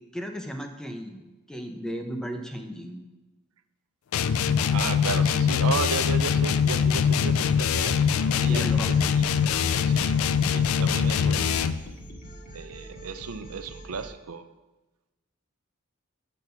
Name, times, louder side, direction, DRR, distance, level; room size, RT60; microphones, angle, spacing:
voice 1, 0.1-1.2 1.5-3.0 8.4-8.9, equal, 5° left, 4 dB, 0.7 m, -35 dB
sound 1, 4.1-11.9, left 7 dB, 70° left, 0.4 m, -23 dB
voice 2, 4.7-9.2 9.8-10.2 10.5-11.7 12.5-14.5, right 5 dB, 90° right, 10 dB, 0.5 m, -34 dB
sound 2, 6.5-14.1, right 1 dB, 45° left, 1.7 m, -43 dB
8.0 x 4.3 x 6.7 m, 1.1 s
head